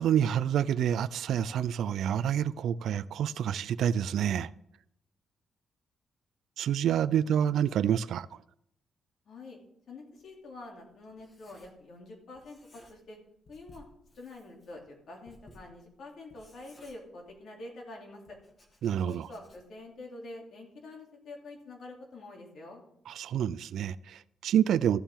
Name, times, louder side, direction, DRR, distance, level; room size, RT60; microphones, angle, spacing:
voice 1, 0.0-4.5 6.6-8.4 18.8-19.3 23.1-25.0, right 9 dB, 70° right, 0.3 m, -28 dB
voice 2, 9.2-9.6 9.9-13.2 13.5-13.8 14.2-18.4 19.1-22.8, left 2 dB, 55° left, 2.8 m, -47 dB
Writing, 10.2-12.1 12.3-13.2 13.4-17.6 18.2-19.9, left 1 dB, 30° left, 1.9 m, -59 dB
14.5 x 7.2 x 3.6 m
cardioid pair, 160°, 0 cm